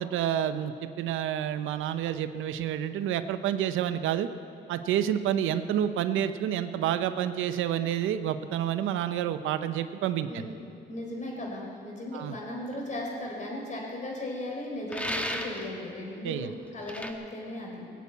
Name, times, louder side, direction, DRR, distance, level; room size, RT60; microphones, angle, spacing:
voice 1, 0.0-4.3 4.7-10.4 12.1-12.4 16.2-16.5, right 10 dB, 85° right, 11 dB, 0.7 m, -29 dB
voice 2, 10.9-17.9, left 1 dB, 40° left, -1 dB, 4.7 m, -37 dB
sound 1, 14.9-15.7 16.9-17.1, equal, 5° left, 1.4 m, -33 dB
18.0 x 8.3 x 8.5 m, 2.9 s
cardioid pair, 90°, 20 cm